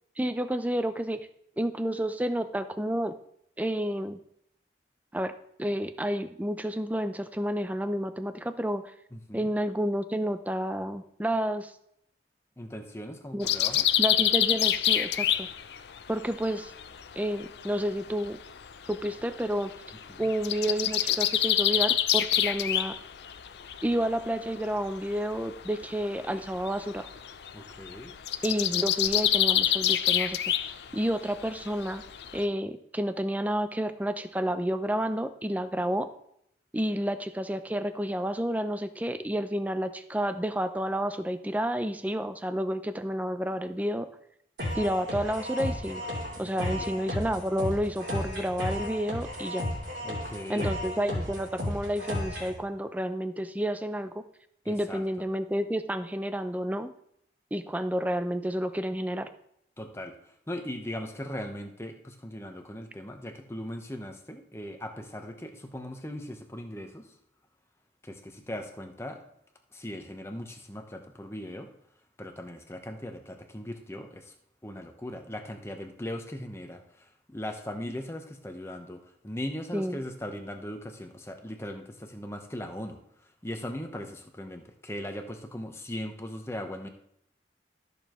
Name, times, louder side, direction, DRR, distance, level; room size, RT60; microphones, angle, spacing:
voice 1, 0.2-1.3 1.6-3.2 3.6-4.2 5.1-8.9 9.3-11.7 13.3-13.5 14.0-15.5 16.1-16.7 17.2-18.4 18.9-19.7 20.2-23.0 23.8-27.1 28.4-30.5 30.9-32.0 32.3-36.1 36.7-44.1 44.7-46.1 46.4-49.7 50.5-54.2 54.7-56.9 57.5-59.3 79.7-80.0, equal, 10° right, 10 dB, 0.5 m, -30 dB
voice 2, 9.1-9.5 12.6-13.9 20.1-20.2 27.5-28.1 46.4-47.0 50.0-50.7 54.6-55.0 59.8-60.1 60.5-67.1 68.0-69.2 69.7-71.7 72.2-74.3 74.6-83.0 83.4-86.9, left 1 dB, 15° left, 5 dB, 0.9 m, -39 dB
sound 1, 13.4-17.7 18.0-24.3 24.5-32.4, left 11 dB, 70° left, 0.5 m, -27 dB
sound 2, 44.6-52.6, left 1 dB, 80° right, 3.4 m, -34 dB
13.5 x 6.8 x 3.1 m, 0.72 s
head